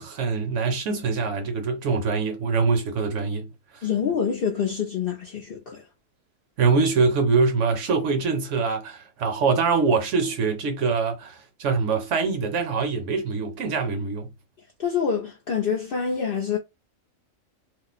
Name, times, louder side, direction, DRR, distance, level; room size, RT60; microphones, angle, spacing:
voice 1, 0.0-3.5 6.6-14.3, right 4 dB, 65° right, 1.0 m, -24 dB
voice 2, 3.8-5.8 14.8-16.6, left 7 dB, 60° left, 0.6 m, -26 dB
2.5 x 2.0 x 3.9 m
omnidirectional pair, 1.4 m